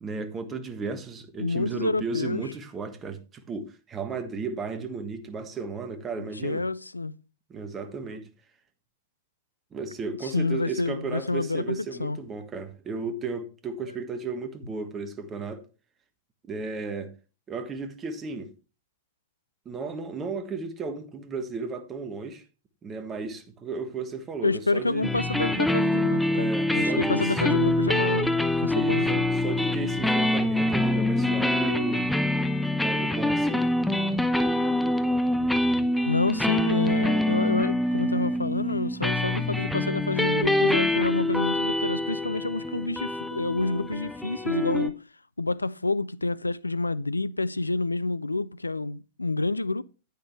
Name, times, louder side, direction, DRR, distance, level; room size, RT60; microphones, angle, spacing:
voice 1, 0.0-6.6 7.5-8.3 9.7-15.6 16.4-17.1 17.5-18.5 19.6-22.4 22.8-25.1 26.3-27.4 28.7-29.1 29.4-32.1 32.8-33.8, right 4 dB, 20° right, 1.4 m, -34 dB
voice 2, 1.4-2.4 6.4-7.1 10.2-12.2 24.4-28.3 28.6-29.2 36.1-45.0 45.4-49.8, left 2 dB, 85° left, 0.4 m, -28 dB
sound 1, 25.0-44.9, left 1 dB, ahead, 0.8 m, -25 dB
10.0 x 9.1 x 3.1 m
figure-of-eight pair, 95°, 0 cm